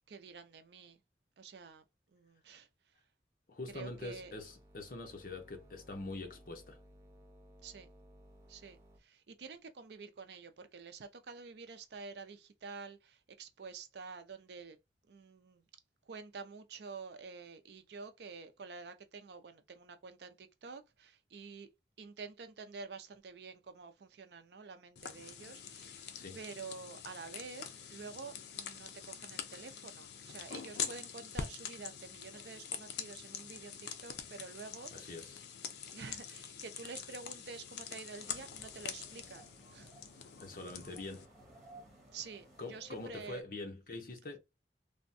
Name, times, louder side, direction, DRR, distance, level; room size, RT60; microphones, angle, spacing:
voice 1, 0.1-1.0 1.4-1.8 2.1-3.0 3.7-4.3 7.6-7.9 8.5-14.8 15.1-15.6 16.1-21.7 22.0-35.3 35.9-39.9 42.1-43.4, right 5 dB, 75° right, 0.5 m, -49 dB
voice 2, 3.5-6.8 26.1-26.4 34.9-35.4 40.4-41.3 42.6-44.4, left 2 dB, 50° left, 0.8 m, -44 dB
sound 1, 3.7-9.0, equal, 15° right, 0.5 m, -60 dB
sound 2, 25.0-41.3, left 7 dB, 75° left, 0.4 m, -45 dB
sound 3, 38.1-43.4, right 1 dB, ahead, 1.4 m, -58 dB
3.4 x 2.1 x 2.5 m
head